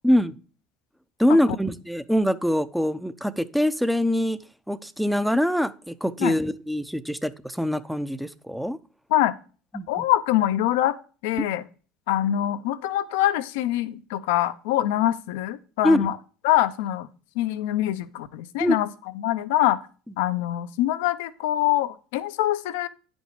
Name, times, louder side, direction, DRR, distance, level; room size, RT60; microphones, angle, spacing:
voice 1, 0.0-0.4 1.2-4.4 4.7-8.8 9.7-10.0 11.4-11.5 15.8-16.1 18.6-18.8, equal, ahead, 14 dB, 0.7 m, -23 dB
voice 2, 9.9-11.0 11.2-11.6 12.1-16.1 16.4-17.1 17.4-18.9 19.2-19.8 20.2-22.9, left 13 dB, 75° left, 14 dB, 0.6 m, -24 dB
9.8 x 5.3 x 4.8 m, 0.38 s
hypercardioid pair, 70°, 0 cm